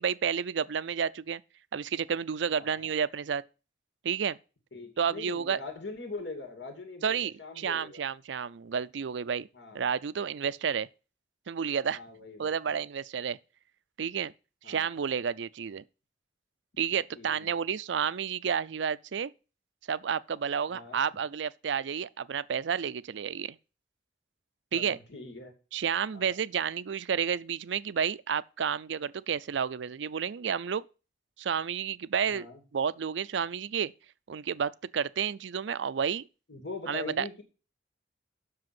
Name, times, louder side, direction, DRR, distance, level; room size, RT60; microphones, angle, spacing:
voice 1, 0.0-1.4 1.7-3.4 4.0-4.4 5.0-5.6 7.0-9.5 9.7-10.9 11.5-12.0 12.4-13.4 14.0-14.3 14.7-15.8 16.8-19.3 19.9-23.6 24.7-25.0 25.7-30.8 31.4-32.5 32.7-33.9 34.3-36.2 36.9-37.3, right 7 dB, 85° right, 0.5 m, -31 dB
voice 2, 2.5-2.9 4.7-8.0 9.5-9.9 11.9-12.8 14.6-15.0 17.1-17.6 20.7-21.0 24.7-25.5 26.1-26.4 32.3-32.6 36.5-37.4, left 3 dB, 85° left, 2.7 m, -42 dB
7.7 x 6.3 x 7.6 m
head